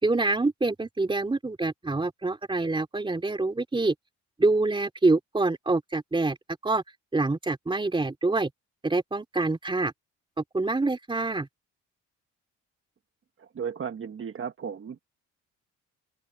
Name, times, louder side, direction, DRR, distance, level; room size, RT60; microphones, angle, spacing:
voice 1, 0.0-3.9 4.4-6.4 6.6-6.8 7.1-8.5 8.8-9.9 10.4-11.5, right 3 dB, 15° right, 2.8 m, -26 dB
voice 2, 13.4-15.0, right 7 dB, 45° right, 1.5 m, -35 dB
cardioid pair, 90°, 30 cm